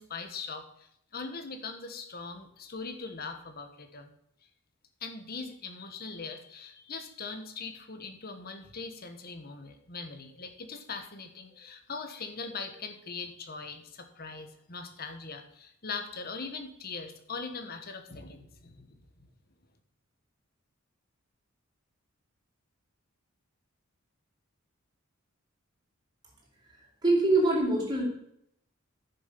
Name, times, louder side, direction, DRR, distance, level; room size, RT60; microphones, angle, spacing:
voice 1, 0.0-4.1 5.0-19.0, left 4 dB, 45° left, 7 dB, 1.5 m, -41 dB
voice 2, 27.0-28.0, right 2 dB, 20° right, -3 dB, 3.9 m, -24 dB
10.0 x 7.0 x 6.9 m, 0.74 s
head